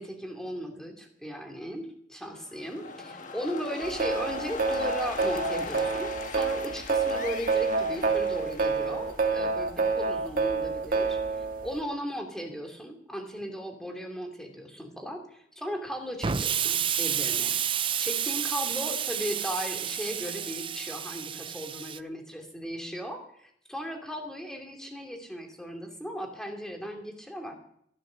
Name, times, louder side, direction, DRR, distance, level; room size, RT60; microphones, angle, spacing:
voice 1, 0.0-27.5, equal, 5° left, 3 dB, 2.5 m, -37 dB
sound 1, 2.3-9.2, left 4 dB, 45° left, 1.4 m, -40 dB
sound 2, 3.8-11.8, right 4 dB, 50° right, 1.7 m, -28 dB
Explosion, 16.2-22.0, right 9 dB, 30° right, 0.5 m, -30 dB
14.0 x 12.0 x 6.3 m, 0.69 s
head